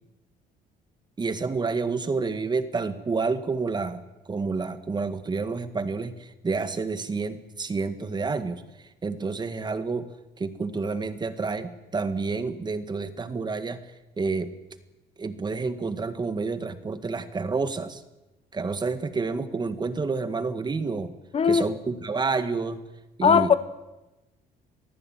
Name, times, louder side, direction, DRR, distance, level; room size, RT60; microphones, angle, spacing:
voice 1, 1.2-8.6 9.0-10.1 10.4-13.8 14.2-14.5 15.2-18.0 18.5-21.1 21.4-22.8 23.2-23.6, right 4 dB, 25° right, 1.9 m, -29 dB
voice 2, 21.3-21.7 23.2-23.5, left 7 dB, 35° left, 1.0 m, -18 dB
24.0 x 15.5 x 9.2 m
cardioid pair, 110°, 17 cm